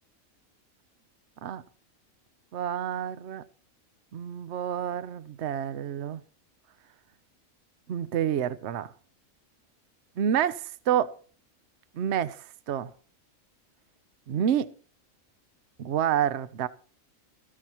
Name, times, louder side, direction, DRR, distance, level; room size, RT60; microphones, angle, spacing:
voice 1, 2.5-3.4 4.1-6.2 7.9-8.9 10.2-11.1 11.9-12.9 14.3-14.7 15.8-16.7, right 9 dB, 60° right, 1.0 m, -28 dB
17.5 x 14.0 x 3.0 m
omnidirectional pair, 1.4 m